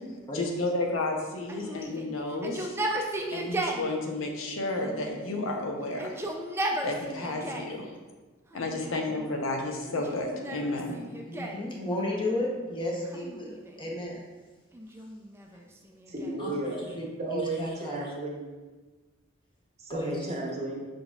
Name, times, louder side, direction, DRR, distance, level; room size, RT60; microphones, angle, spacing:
voice 1, 0.3-2.7 3.3-6.2 6.8-7.9 8.5-11.0, left 2 dB, 85° left, 2 dB, 0.6 m, -31 dB
Yell, 1.5-3.9 4.8-5.5 5.9-7.8 8.5-9.2 9.9-11.7 13.0-13.9 14.7-16.5, right 1 dB, 10° right, 0.3 m, -35 dB
voice 2, 10.9-14.2 16.4-18.1 19.9-20.3, left 1 dB, 25° left, -2 dB, 0.8 m, -34 dB
voice 3, 16.1-16.8 17.2-18.5 19.8-20.9, right 2 dB, 35° right, -1 dB, 0.7 m, -33 dB
5.1 x 3.9 x 2.3 m, 1.3 s
head